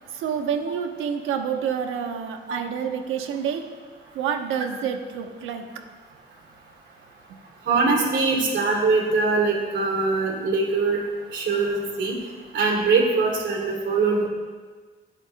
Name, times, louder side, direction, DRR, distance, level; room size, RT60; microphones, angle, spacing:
voice 1, 0.1-3.7 4.1-5.6, right 7 dB, 85° right, 5 dB, 1.1 m, -28 dB
voice 2, 7.7-11.0 11.3-12.1 12.5-14.3, right 4 dB, 70° right, -2 dB, 3.0 m, -22 dB
22.5 x 8.1 x 2.3 m, 1.5 s
cardioid pair, 90°, 20 cm